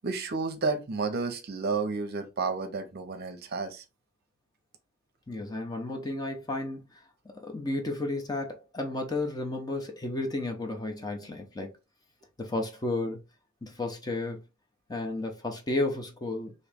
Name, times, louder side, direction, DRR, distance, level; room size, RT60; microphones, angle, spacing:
voice 1, 0.0-3.8, right 4 dB, 50° right, 0.6 m, -31 dB
voice 2, 5.3-6.8 7.2-11.7 12.4-13.2 13.6-14.4 14.9-16.5, left 2 dB, 20° left, 0.6 m, -32 dB
3.0 x 2.7 x 3.4 m
head